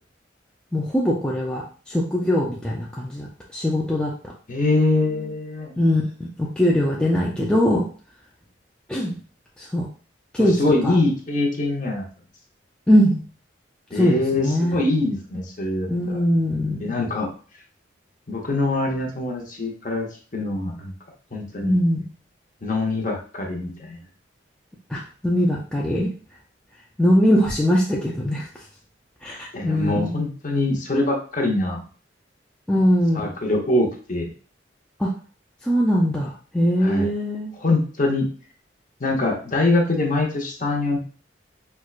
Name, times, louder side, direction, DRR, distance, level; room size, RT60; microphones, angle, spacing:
voice 1, 0.7-4.1 5.8-7.8 8.9-9.1 9.6-9.9 10.3-11.0 12.9-13.2 13.9-14.8 15.9-17.0 21.6-22.0 24.9-26.1 27.0-28.5 29.2-30.2 32.7-33.3 35.0-35.1 35.6-37.5, equal, 5° left, -4 dB, 0.3 m, -21 dB
voice 2, 4.5-5.7 10.4-12.0 13.9-16.2 16.8-17.3 18.3-20.1 20.3-20.9 21.3-21.8 22.6-24.0 29.5-31.8 33.1-34.3 36.8-37.1 37.6-38.2 39.0-41.0, left 2 dB, 40° left, 0 dB, 0.8 m, -23 dB
4.4 x 2.2 x 2.4 m, 0.40 s
head